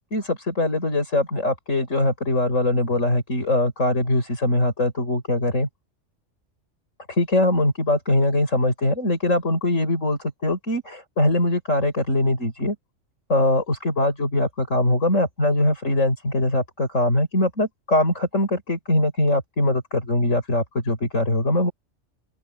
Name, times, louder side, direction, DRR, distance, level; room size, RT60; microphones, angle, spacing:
voice 1, 0.1-5.7 7.1-12.8 13.3-21.7, left 1 dB, 90° left, 6.3 m, -22 dB
open air
omnidirectional pair, 1.3 m